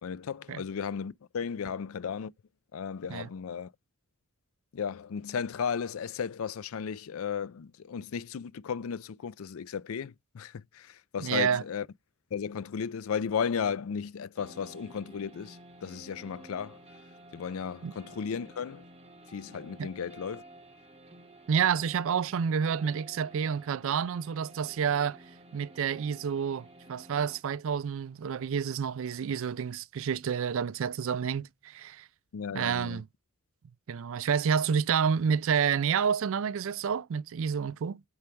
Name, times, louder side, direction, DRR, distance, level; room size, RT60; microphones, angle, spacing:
voice 1, 0.0-2.3 2.7-3.7 4.7-11.9 12.3-16.8 17.3-18.8 19.3-20.4 32.3-33.0, left 6 dB, 70° left, 0.4 m, -35 dB
voice 2, 11.2-11.6 17.8-17.9 19.8-19.9 21.5-25.2 25.5-32.1 32.5-33.0 33.9-38.0, right 7 dB, 65° right, 0.4 m, -29 dB
sound 1, 14.4-27.4, right 1 dB, 30° right, 1.9 m, -52 dB
8.7 x 3.3 x 4.5 m
head